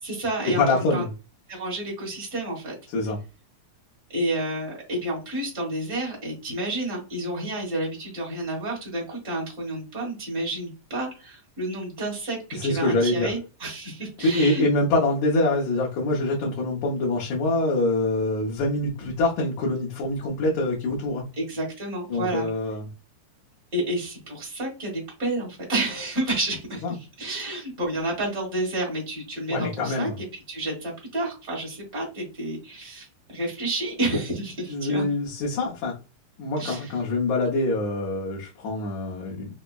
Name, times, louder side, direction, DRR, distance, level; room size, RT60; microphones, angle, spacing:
voice 1, 0.0-1.1 1.5-2.8 4.1-14.7 21.4-22.5 23.7-35.0 36.6-36.9, right 1 dB, 35° right, -3 dB, 0.8 m, -30 dB
voice 2, 0.6-1.1 2.9-3.2 12.5-13.3 14.2-21.2 22.1-22.9 26.8-26.9 29.5-30.2 34.7-36.0 36.4-39.5, left 2 dB, 70° left, -4 dB, 2.0 m, -25 dB
5.3 x 2.1 x 2.3 m, 0.31 s
omnidirectional pair, 3.6 m